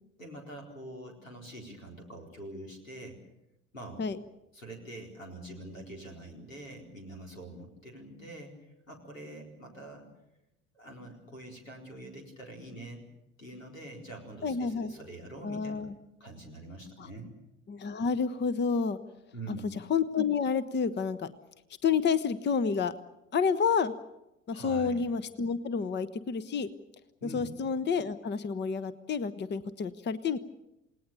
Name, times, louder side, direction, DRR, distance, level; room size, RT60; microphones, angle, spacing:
voice 1, 0.2-3.2 3.7-4.0 4.5-10.1 10.7-13.0 13.4-15.9 16.2-17.3 19.3-19.8 24.5-25.0 27.2-27.5, right 1 dB, 85° left, 2 dB, 4.3 m, -45 dB
voice 2, 14.4-14.9 15.4-15.9 17.7-19.0 19.5-19.6 19.9-21.3 21.8-22.9 23.3-23.9 24.5-26.7 27.3-30.4, left 6 dB, 25° left, 15 dB, 1.1 m, -29 dB
29.0 x 19.0 x 6.8 m, 0.90 s
figure-of-eight pair, 65°, 38 cm